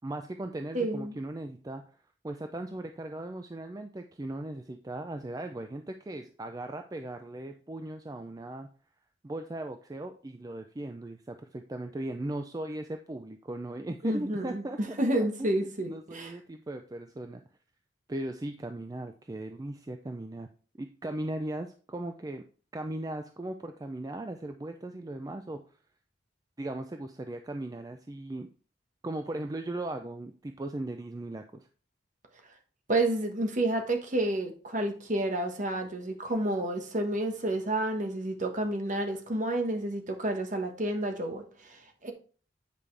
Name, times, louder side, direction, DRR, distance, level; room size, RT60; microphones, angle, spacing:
voice 1, 0.0-1.8 2.2-8.7 9.2-14.8 15.1-17.4 18.1-20.5 20.8-22.4 22.7-25.6 26.6-28.5 29.0-31.7, right 1 dB, 20° right, 0.4 m, -38 dB
voice 2, 0.7-1.1 14.0-16.3 32.9-42.1, right 1 dB, 45° right, 1.2 m, -30 dB
9.1 x 5.1 x 3.3 m
head